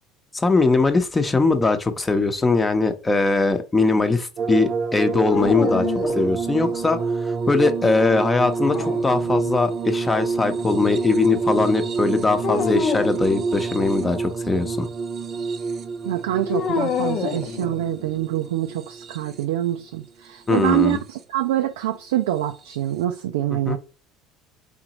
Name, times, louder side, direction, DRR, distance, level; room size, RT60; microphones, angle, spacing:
voice 1, 0.3-5.9 6.1-14.9 20.5-21.0 23.7-23.8, left 3 dB, 20° left, 0.8 m, -21 dB
sound 1, 4.4-19.6 20.5-21.2 22.6-22.8, right 4 dB, 45° right, 0.6 m, -27 dB
sound 2, 5.2-6.8 8.5-9.6 12.4-13.2 16.5-18.1, left 6 dB, 55° left, 0.7 m, -27 dB
voice 2, 16.0-23.8, right 13 dB, 85° right, 0.4 m, -25 dB
3.9 x 3.6 x 2.9 m
hypercardioid pair, 85°, 0 cm